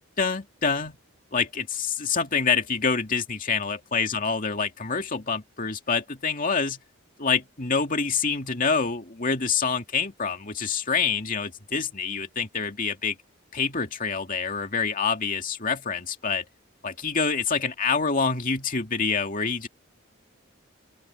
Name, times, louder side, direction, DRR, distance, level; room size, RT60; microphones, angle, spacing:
voice 1, 0.2-1.0 1.3-6.8 7.2-13.2 13.5-16.4 16.8-19.7, left 5 dB, 40° left, 2.4 m, -26 dB
open air
head